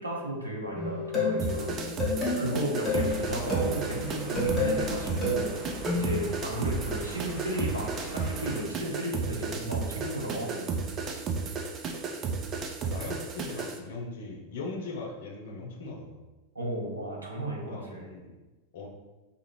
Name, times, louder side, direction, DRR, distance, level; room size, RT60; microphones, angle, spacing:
voice 1, 0.0-1.8 2.4-5.6 5.9-10.7 16.5-18.1, right 1 dB, 80° right, -1 dB, 0.6 m, -34 dB
sound 1, 0.7-6.2, left 2 dB, 15° left, 1.3 m, -31 dB
sound 2, 1.4-13.8, right 4 dB, 30° right, 0.3 m, -34 dB
sound 3, 2.9-8.6, equal, 15° right, 1.1 m, -42 dB
voice 2, 3.0-3.4 11.8-11.9 12.8-16.2 17.7-18.4 18.7-18.9, left 3 dB, 55° left, 1 dB, 0.5 m, -40 dB
2.5 x 2.4 x 3.0 m, 1.1 s
figure-of-eight pair, 90°, 0 cm